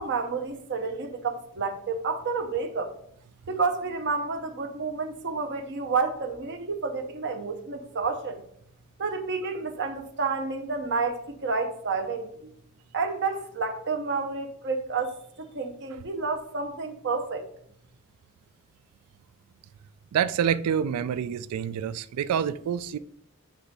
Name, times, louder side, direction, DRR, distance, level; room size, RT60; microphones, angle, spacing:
voice 1, 0.0-2.9 3.5-8.4 9.0-12.3 12.9-17.4, right 4 dB, 55° right, 0.7 m, -30 dB
voice 2, 20.1-23.0, right 8 dB, 85° right, 0.3 m, -27 dB
7.8 x 3.4 x 4.0 m
head